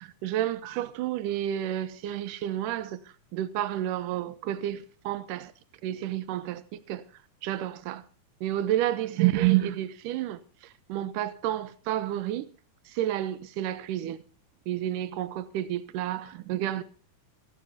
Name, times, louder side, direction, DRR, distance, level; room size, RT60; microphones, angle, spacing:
voice 1, 0.0-5.5 5.8-7.0 7.4-8.0 8.4-12.5 12.9-14.2 14.7-16.8, right 13 dB, 85° right, 2.4 m, -30 dB
24.5 x 11.5 x 2.8 m
omnidirectional pair, 3.7 m